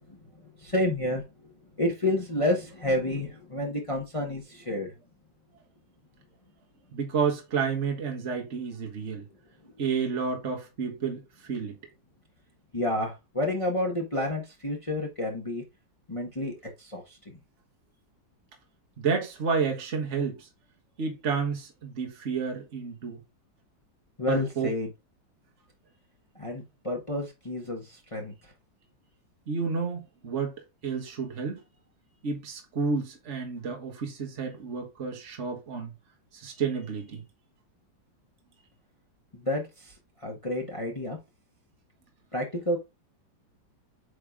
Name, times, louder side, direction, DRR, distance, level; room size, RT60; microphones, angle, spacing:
voice 1, 0.1-4.9 9.6-9.7 12.7-15.6 16.1-17.2 24.2-24.9 26.4-28.3 39.3-39.9 40.2-41.2 42.3-42.8, left 1 dB, 20° left, 1.4 m, -30 dB
voice 2, 6.9-9.3 9.8-11.8 19.0-20.5 21.0-23.2 24.3-24.7 29.5-30.5 30.8-31.6 32.2-35.9 36.3-37.2, right 5 dB, 40° right, 1.8 m, -30 dB
8.6 x 3.4 x 3.6 m
omnidirectional pair, 2.1 m